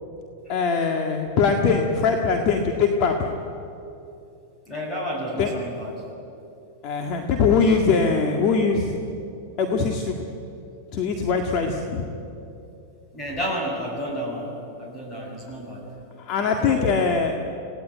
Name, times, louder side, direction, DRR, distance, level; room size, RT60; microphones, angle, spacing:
voice 1, 0.5-3.3 5.4-5.5 6.8-8.9 9.6-10.3 10.9-12.0 16.2-17.4, left 5 dB, 45° left, 3 dB, 1.9 m, -22 dB
voice 2, 4.7-6.0 13.1-15.8 16.4-17.0, equal, 15° left, 0 dB, 7.2 m, -31 dB
26.5 x 18.0 x 9.3 m, 2.8 s
supercardioid pair, 145°, 0 cm